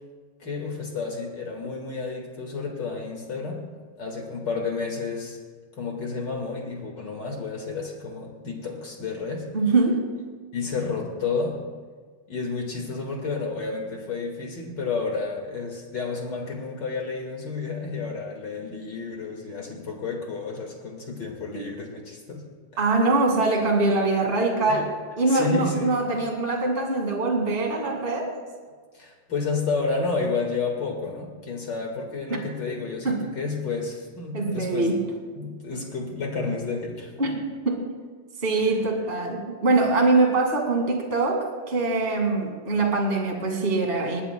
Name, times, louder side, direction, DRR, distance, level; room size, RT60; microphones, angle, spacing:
voice 1, 0.4-3.7 4.0-5.4 5.8-9.5 10.5-11.6 12.3-22.4 24.7-24.8 25.3-26.0 28.9-34.9 35.4-37.3, left 4 dB, 40° left, 1 dB, 1.8 m, -31 dB
voice 2, 9.5-10.1 22.8-24.9 25.2-28.3 32.3-32.4 33.0-33.2 34.3-35.0 37.2-37.8 38.4-44.2, right 3 dB, 25° right, 1 dB, 1.6 m, -23 dB
20.0 x 20.0 x 2.2 m, 1.5 s
omnidirectional pair, 3.8 m